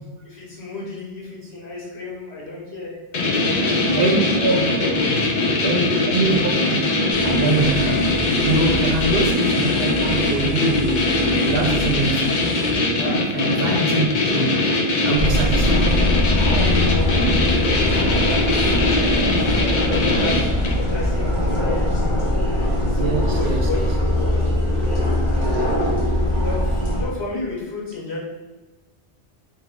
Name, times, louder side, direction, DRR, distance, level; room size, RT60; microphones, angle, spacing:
voice 1, 0.2-4.4 4.8-5.5 8.6-9.0 13.0-13.2 16.4-22.3 22.8-24.0 24.9-25.3 25.6-25.8 26.4-28.2, left 2 dB, 75° left, -6 dB, 1.6 m, -33 dB
sound 1, 3.1-20.9, left 2 dB, 50° left, 0.7 m, -21 dB
voice 2, 4.0-4.7 5.6-6.4 6.7-8.1 8.5-11.1 11.5-12.4 13.3-14.7 15.0-16.0 23.0-23.9 25.4-25.8, right 3 dB, 65° right, 3 dB, 0.8 m, -24 dB
sound 2, 7.1-12.7, equal, 10° right, 1.0 m, -32 dB
sound 3, 15.1-27.1, left 1 dB, 30° left, 1.0 m, -21 dB
3.4 x 2.9 x 3.6 m, 1.1 s
omnidirectional pair, 1.1 m